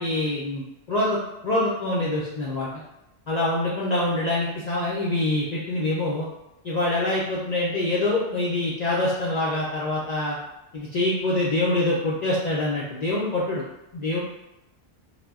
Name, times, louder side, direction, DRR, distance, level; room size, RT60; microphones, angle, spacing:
voice 1, 0.0-2.7 3.3-6.3 6.6-10.4 10.7-13.6 13.9-14.2, left 2 dB, 60° left, -6 dB, 0.4 m, -25 dB
2.1 x 2.0 x 3.4 m, 0.92 s
omnidirectional pair, 1.2 m